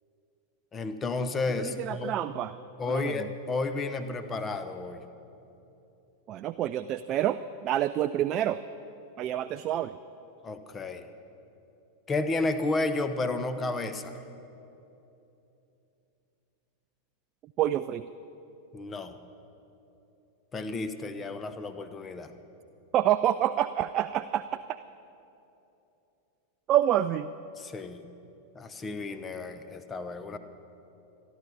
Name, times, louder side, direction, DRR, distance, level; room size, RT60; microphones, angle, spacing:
voice 1, 0.7-2.1 2.8-5.1 10.4-11.1 12.1-14.2 18.7-19.2 20.5-22.3 27.6-28.1 28.5-30.4, left 3 dB, 20° left, 10 dB, 0.9 m, -32 dB
voice 2, 1.6-2.5 2.9-3.3 6.3-8.6 9.2-10.0 17.6-18.1 22.9-24.8 26.7-27.3, right 12 dB, 35° right, 11 dB, 0.3 m, -27 dB
26.0 x 11.0 x 4.1 m, 2.9 s
figure-of-eight pair, 90°, 0 cm